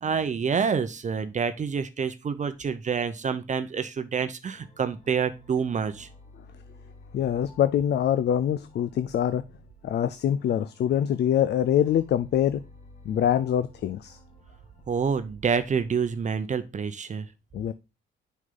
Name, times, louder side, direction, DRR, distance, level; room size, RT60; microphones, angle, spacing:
voice 1, 0.0-6.1 14.9-17.3, right 6 dB, 40° right, 0.7 m, -27 dB
sound 1, 4.5-16.3, equal, 35° left, 1.7 m, -52 dB
voice 2, 7.1-9.4 9.8-12.6 13.0-14.2 17.5-17.7, left 10 dB, 60° left, 0.5 m, -24 dB
6.4 x 5.5 x 3.7 m
cardioid pair, 90°, 20 cm